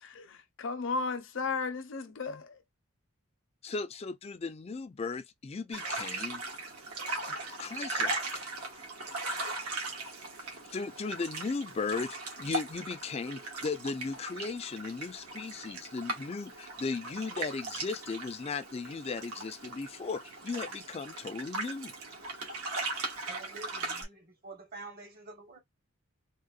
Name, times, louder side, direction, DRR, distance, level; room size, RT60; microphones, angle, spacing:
voice 1, 0.0-2.6, left 4 dB, 60° left, 0.7 m, -35 dB
voice 2, 3.6-6.4 7.6-8.4 10.4-21.9, left 4 dB, 30° left, 0.3 m, -37 dB
sound 1, 5.7-24.0, right 3 dB, 85° right, 1.4 m, -38 dB
voice 3, 23.3-25.1 25.4-25.6, right 2 dB, 40° right, 0.9 m, -47 dB
3.7 x 2.1 x 2.3 m
head